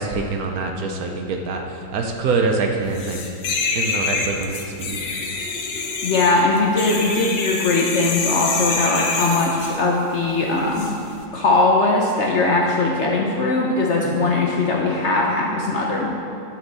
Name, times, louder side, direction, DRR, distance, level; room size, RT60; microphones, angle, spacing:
voice 1, 0.0-3.2 3.8-5.0 14.0-14.4, right 4 dB, 70° right, 3 dB, 1.0 m, -25 dB
sound 1, 3.0-9.8 10.7-10.9, left 4 dB, 85° left, 1.4 m, -26 dB
voice 2, 6.0-10.9 11.3-16.1, left 2 dB, 60° left, -1 dB, 0.7 m, -20 dB
11.0 x 4.5 x 3.9 m, 2.5 s
omnidirectional pair, 1.8 m